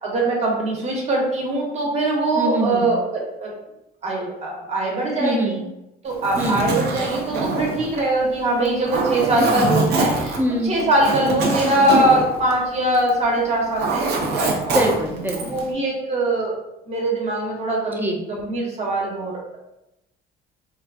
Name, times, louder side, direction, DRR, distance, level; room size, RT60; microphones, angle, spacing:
voice 1, 0.0-3.5 4.0-5.6 6.0-10.4 10.6-14.7 15.3-16.5 16.9-18.0 18.3-19.6, right 1 dB, 40° right, -2 dB, 1.1 m, -22 dB
voice 2, 2.4-2.9 5.2-5.6 6.4-6.7 10.4-10.8 14.7-15.6 18.0-18.2, right 1 dB, 10° right, 0 dB, 0.5 m, -23 dB
Zipper (clothing), 6.1-13.2 13.5-15.6, right 3 dB, 70° right, 0.7 m, -24 dB
3.7 x 2.3 x 2.5 m, 0.90 s
cardioid pair, 110°, 17 cm